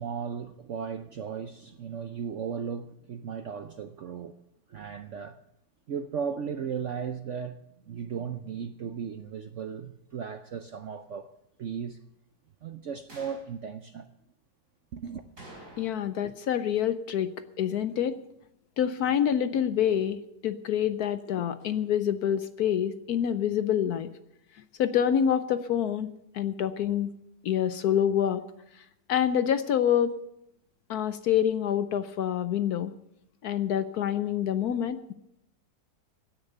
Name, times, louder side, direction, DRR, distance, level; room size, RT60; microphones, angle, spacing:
voice 1, 0.0-4.3 4.7-5.4 5.9-7.6 7.9-11.3 11.6-12.0 12.6-14.1 14.9-15.2, right 7 dB, 65° right, 0.7 m, -36 dB
sound 1, 13.1-13.5 15.4-16.2 16.5-16.6 21.6-21.7, right 1 dB, 45° right, 5.3 m, -49 dB
voice 2, 15.8-18.2 18.8-24.1 24.8-26.1 26.3-27.1 27.4-28.4 29.1-30.1 30.9-32.9 33.4-35.1, left 9 dB, 65° left, 1.1 m, -27 dB
16.0 x 10.0 x 6.7 m
omnidirectional pair, 2.0 m